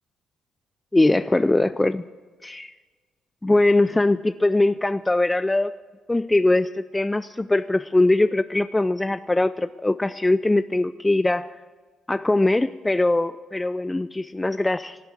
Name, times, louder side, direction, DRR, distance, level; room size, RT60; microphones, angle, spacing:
voice 1, 0.9-2.0 2.4-2.7 3.4-5.7 6.1-11.5 12.1-15.0, left 2 dB, 15° left, 13 dB, 0.4 m, -21 dB
17.5 x 8.2 x 7.7 m, 1.4 s
cardioid pair, 90°, 0 cm